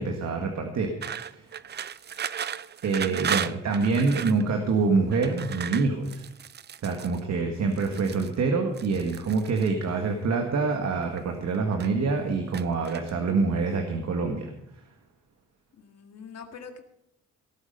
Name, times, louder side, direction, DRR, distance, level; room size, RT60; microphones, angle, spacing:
voice 1, 0.0-1.5 2.8-6.2 6.8-14.5, right 4 dB, 60° right, 3 dB, 1.8 m, -26 dB
sound 1, 1.0-4.4 5.1-7.2 7.7-8.3 8.7-9.7 10.6-11.2 11.5-12.1 12.5-13.3, right 8 dB, 35° right, 0.5 m, -35 dB
voice 2, 3.0-3.4 15.7-16.8, left 6 dB, 60° left, 5 dB, 2.0 m, -45 dB
18.0 x 8.2 x 5.5 m, 0.80 s
cardioid pair, 90°, 30 cm